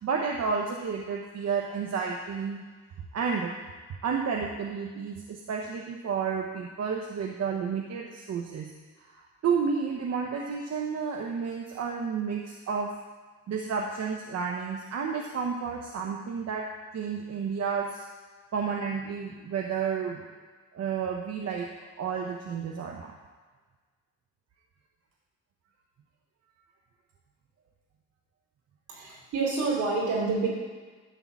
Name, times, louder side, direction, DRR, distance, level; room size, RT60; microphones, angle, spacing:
voice 1, 0.0-2.6 3.1-3.6 4.0-8.7 9.0-12.9 13.5-16.7 16.9-18.0 18.5-20.2 20.7-21.7 22.0-23.2, right 6 dB, 60° right, 0 dB, 0.9 m, -31 dB
voice 2, 28.9-30.5, right 4 dB, 75° right, -4 dB, 3.2 m, -28 dB
11.5 x 3.8 x 7.2 m, 1.4 s
cardioid pair, 90°, 30 cm